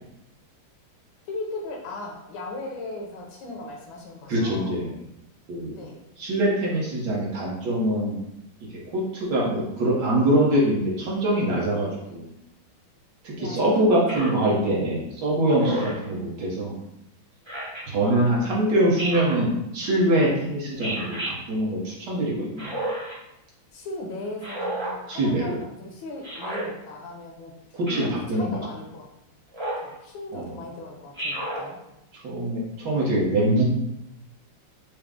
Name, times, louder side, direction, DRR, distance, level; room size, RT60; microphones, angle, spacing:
voice 1, 1.3-4.8 5.7-6.0 12.0-12.2 13.4-14.3 15.6-15.9 20.7-20.9 23.7-27.5 27.8-29.1 29.8-31.8, left 2 dB, 75° left, 0 dB, 1.5 m, -38 dB
voice 2, 4.3-5.0 5.5-5.7 6.2-8.2 8.9-12.3 13.2-16.8 17.9-22.7 25.1-25.5 27.7-28.5 30.3-30.5 32.2-33.6, right 1 dB, 60° right, -4 dB, 1.4 m, -23 dB
Speech synthesizer, 14.1-14.4 15.6-16.1 17.5-17.8 19.0-19.4 20.8-21.3 22.6-23.1 24.4-25.0 26.2-26.6 27.9-28.2 29.5-29.9 31.2-31.6, right 1 dB, 30° right, 0.5 m, -31 dB
4.9 x 2.0 x 3.4 m, 0.85 s
omnidirectional pair, 2.2 m